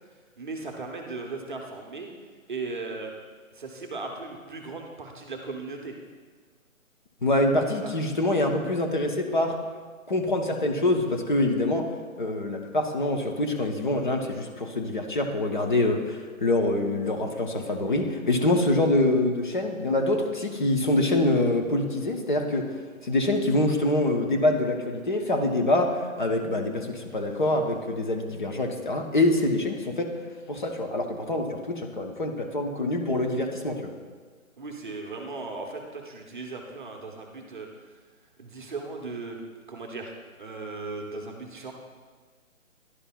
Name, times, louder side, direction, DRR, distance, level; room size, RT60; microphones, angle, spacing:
voice 1, 0.4-2.1 2.5-3.1 3.5-5.9 7.8-7.9 34.6-37.7 38.4-40.1 40.4-41.7, right 3 dB, 35° right, 2 dB, 0.7 m, -37 dB
voice 2, 7.2-9.6 10.1-11.9 12.2-22.7 23.0-30.1 30.5-33.8, left 2 dB, 35° left, 3 dB, 0.6 m, -25 dB
11.0 x 5.2 x 2.2 m, 1.5 s
hypercardioid pair, 160°, 42 cm